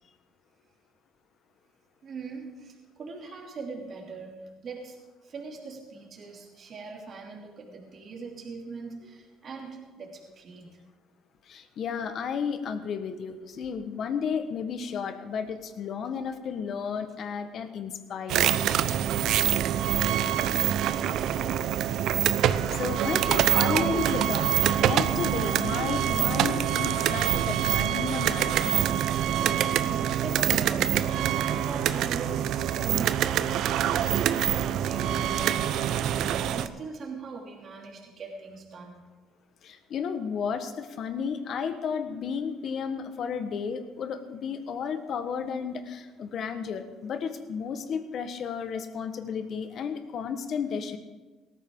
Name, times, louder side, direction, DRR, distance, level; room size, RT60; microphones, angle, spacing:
voice 1, 2.0-5.0 5.2-10.8 19.7-21.4 29.8-39.0, right 4 dB, 45° right, -1 dB, 2.9 m, -41 dB
voice 2, 11.5-18.5 22.5-24.5 24.8-29.0 39.6-51.0, left 6 dB, 55° left, 9 dB, 1.4 m, -33 dB
sound 1, 18.3-36.7, right 11 dB, 65° right, 0.6 m, -25 dB
17.5 x 14.0 x 3.9 m, 1.3 s
cardioid pair, 105°, 0 cm